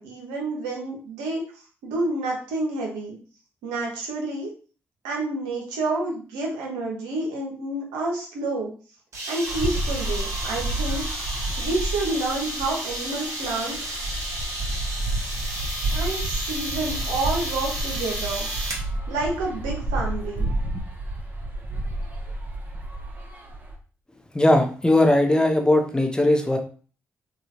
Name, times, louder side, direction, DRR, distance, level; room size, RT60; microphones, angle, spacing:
voice 1, 0.0-1.4 1.8-3.2 3.6-4.5 5.0-8.7 9.3-11.1 11.6-13.8 15.9-18.5 19.1-20.5, right 2 dB, 85° right, -1 dB, 0.8 m, -29 dB
sound 1, 9.1-18.9, right 1 dB, 50° right, 1.1 m, -32 dB
sound 2, 9.5-23.8, right 1 dB, 30° right, 0.8 m, -30 dB
voice 2, 24.3-26.6, left 1 dB, 10° left, 5 dB, 0.7 m, -19 dB
3.0 x 2.3 x 2.8 m, 0.40 s
hypercardioid pair, 45°, 6 cm